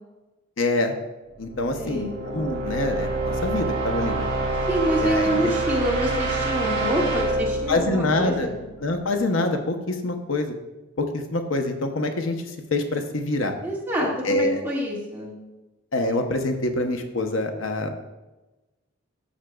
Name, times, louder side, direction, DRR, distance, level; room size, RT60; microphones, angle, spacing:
voice 1, 0.6-0.9 1.4-4.3 5.0-5.5 7.7-8.5 8.8-10.5 11.0-12.4 12.7-13.6 14.2-14.6 15.9-17.9, left 2 dB, 70° left, 5 dB, 0.8 m, -25 dB
sound 1, 1.4-9.2, right 2 dB, 55° right, 3.1 m, -27 dB
voice 2, 1.8-2.1 4.7-8.6 13.6-15.3, equal, 10° right, -5 dB, 1.8 m, -26 dB
12.5 x 7.3 x 2.3 m, 1.1 s
head